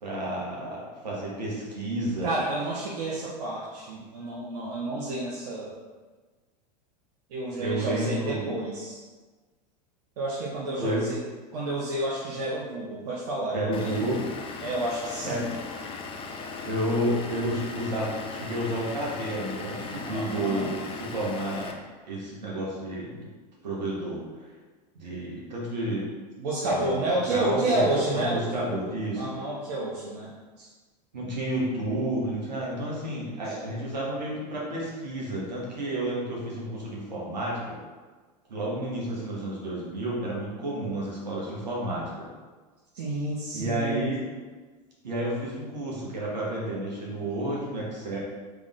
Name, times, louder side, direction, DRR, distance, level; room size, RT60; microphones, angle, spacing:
voice 1, 0.0-2.3 7.6-8.5 10.8-11.1 13.5-14.2 15.2-15.4 16.6-21.7 22.1-23.3 23.6-24.2 24.9-26.1 26.7-27.8 28.1-29.4 31.1-37.8 38.5-42.3 43.5-44.2 45.0-48.2, right 1 dB, 90° right, -5 dB, 1.3 m, -31 dB
voice 2, 2.2-5.7 7.3-9.0 10.2-11.2 11.5-14.1 14.6-15.5 20.0-20.8 26.4-28.5 29.2-30.7 33.4-33.6 42.9-44.2, right 2 dB, 70° right, -5 dB, 0.8 m, -30 dB
Vehicle / Engine, 13.7-21.7, left 4 dB, 25° left, 0.5 m, -38 dB
3.6 x 3.4 x 3.6 m, 1.3 s
hypercardioid pair, 90°, 21 cm